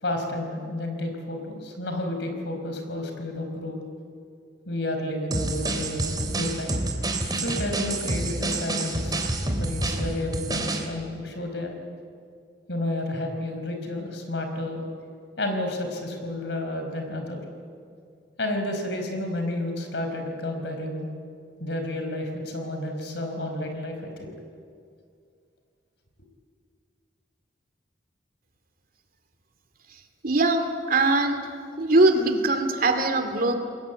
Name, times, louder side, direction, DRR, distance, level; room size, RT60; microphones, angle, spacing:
voice 1, 0.0-3.8 4.7-6.7 7.3-9.3 9.6-11.7 12.7-14.8 15.4-17.4 18.4-21.1 21.6-24.3, left 1 dB, 75° left, 5 dB, 5.0 m, -31 dB
sound 1, 5.3-10.9, right 2 dB, 25° right, 3.0 m, -28 dB
voice 2, 30.2-31.4 31.8-33.6, right 2 dB, 55° right, 6 dB, 2.5 m, -21 dB
28.5 x 21.5 x 8.4 m, 2.3 s
head